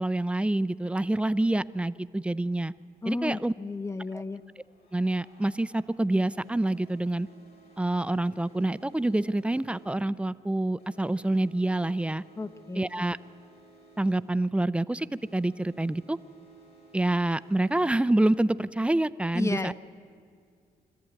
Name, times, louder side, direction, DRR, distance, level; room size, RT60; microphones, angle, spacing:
voice 1, 0.0-2.7 3.1-3.5 4.9-7.3 7.8-12.2 12.8-13.2 14.0-15.1 15.3-16.2 16.9-19.7, right 1 dB, 5° right, 15 dB, 0.4 m, -27 dB
sound 1, 2.8-2.9 3.9-18.9, right 2 dB, 85° left, 6.2 m, -57 dB
voice 2, 3.0-4.4 12.4-12.9 19.3-19.7, left 3 dB, 20° left, 13 dB, 0.7 m, -32 dB
24.0 x 14.0 x 9.2 m, 2.2 s
cardioid pair, 100°, 16 cm